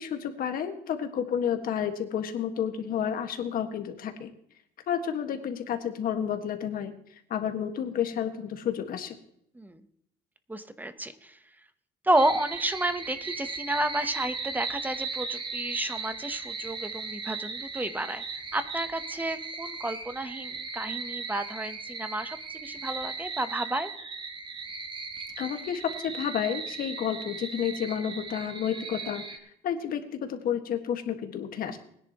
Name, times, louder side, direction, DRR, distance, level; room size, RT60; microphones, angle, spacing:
voice 1, 0.0-4.3 4.9-6.9 7.3-9.2 25.4-31.8, left 8 dB, 60° left, 6 dB, 1.6 m, -31 dB
voice 2, 10.5-11.4 12.0-23.9, right 1 dB, 10° right, 11 dB, 0.9 m, -31 dB
sound 1, 12.1-29.4, right 4 dB, 30° right, 1.4 m, -37 dB
20.0 x 10.5 x 3.0 m, 0.72 s
cardioid pair, 110°, 17 cm